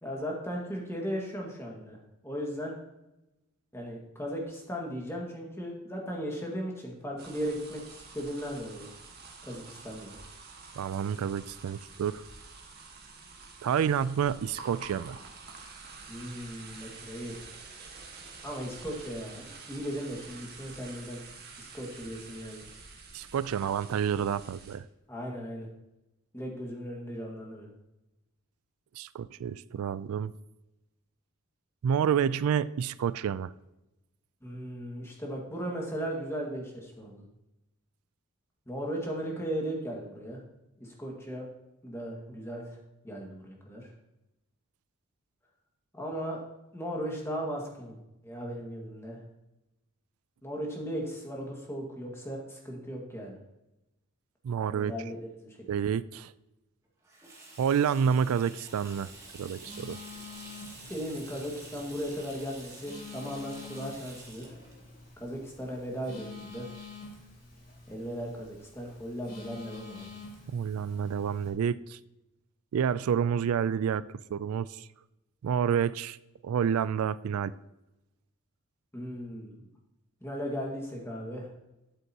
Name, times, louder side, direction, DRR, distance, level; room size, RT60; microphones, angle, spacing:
voice 1, 0.0-2.7 3.7-8.9 9.4-10.2 16.1-17.4 18.4-21.2 21.6-22.7 25.1-25.7 26.3-27.7 34.4-37.2 38.7-40.4 40.8-41.5 41.8-42.8 43.0-43.9 45.9-46.4 46.7-48.0 48.2-49.2 50.4-53.4 54.7-55.9 60.8-64.5 65.2-66.7 67.9-70.1 78.9-79.6 80.2-81.5, equal, 10° left, -1 dB, 1.7 m, -37 dB
sound 1, 7.2-24.8, right 4 dB, 45° right, 1.7 m, -48 dB
voice 2, 10.8-12.2 13.6-15.2 23.1-24.9 29.0-30.3 31.8-33.5 54.4-54.9 55.7-56.3 57.6-59.1 59.4-60.0 70.5-72.0 72.7-74.0 74.3-74.9 75.4-76.2 76.4-77.5, right 7 dB, 80° right, 17 dB, 0.3 m, -29 dB
Water tap faucet / Sink (filling or washing), 57.0-66.4, right 2 dB, 15° right, 2.3 m, -50 dB
Telephone, 58.7-71.5, left 4 dB, 40° left, 3.1 m, -48 dB
12.5 x 8.0 x 2.9 m, 0.95 s
head